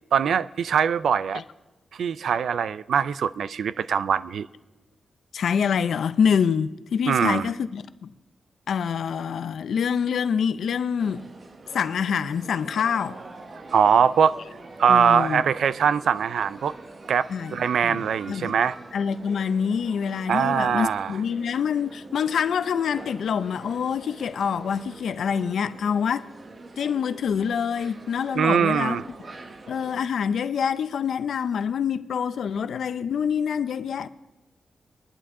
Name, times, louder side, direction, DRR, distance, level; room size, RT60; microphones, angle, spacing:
voice 1, 0.1-1.4 1.9-4.5 7.1-7.5 13.7-14.4 14.8-16.7 17.1-18.8 20.3-21.2 28.3-29.1, right 7 dB, 80° right, 0.4 m, -22 dB
voice 2, 5.3-8.1 8.7-11.2 11.7-13.2 14.9-15.4 17.3-17.6 17.8-18.0 18.3-18.6 18.9-26.3 26.8-29.0 29.7-34.1, left 7 dB, 75° left, 0.5 m, -26 dB
sound 1, 11.0-30.0, right 2 dB, 35° right, 0.9 m, -45 dB
23.0 x 11.0 x 3.7 m
wide cardioid pair, 155°, 0 cm